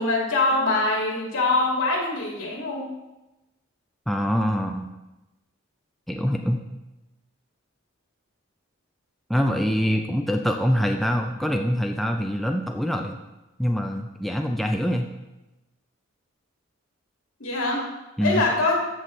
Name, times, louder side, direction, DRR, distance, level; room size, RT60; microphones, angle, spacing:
voice 1, 0.0-2.9 17.4-17.8 18.2-18.8, left 2 dB, 75° left, -2 dB, 2.4 m, -23 dB
voice 2, 4.1-4.9 6.1-6.6 9.3-13.2 13.6-15.1 18.2-18.4, equal, ahead, 2 dB, 0.4 m, -24 dB
14.0 x 5.7 x 3.2 m, 1.0 s
head